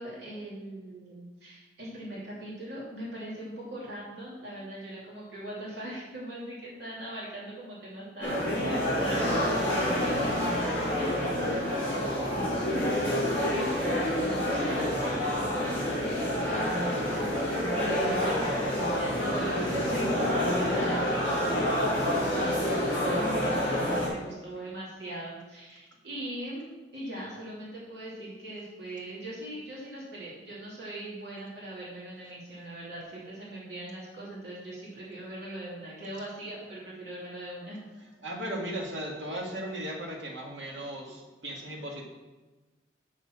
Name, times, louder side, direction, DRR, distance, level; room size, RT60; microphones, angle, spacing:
voice 1, 0.0-37.8, right 1 dB, 65° right, -6 dB, 2.9 m, -41 dB
sound 1, 8.2-24.1, equal, 10° left, 3.5 m, -28 dB
voice 2, 38.2-42.0, right 1 dB, 80° right, 0 dB, 2.0 m, -36 dB
7.1 x 6.7 x 6.1 m, 1.2 s
head